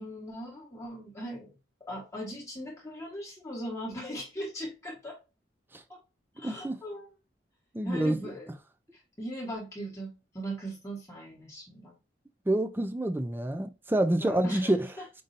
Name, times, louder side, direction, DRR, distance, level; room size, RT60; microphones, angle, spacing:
voice 1, 0.0-1.5 1.9-5.2 5.9-6.0 6.4-7.1 7.8-8.5 8.9-11.9 14.2-15.0, equal, 15° left, 1.2 m, -39 dB
voice 2, 6.4-6.8 7.7-8.3 12.5-14.9, right 1 dB, 10° right, 0.4 m, -27 dB
5.3 x 2.7 x 2.5 m
head